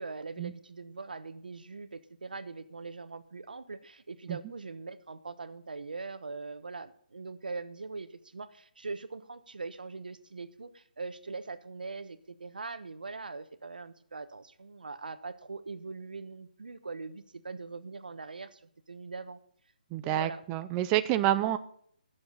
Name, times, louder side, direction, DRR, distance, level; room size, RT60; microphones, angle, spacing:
voice 1, 0.0-19.4 20.0-20.4, right 4 dB, 80° right, 12 dB, 1.1 m, -42 dB
voice 2, 19.9-21.6, right 13 dB, 20° right, 11 dB, 0.4 m, -28 dB
17.5 x 7.1 x 3.9 m, 0.64 s
hypercardioid pair, 155°, 5 cm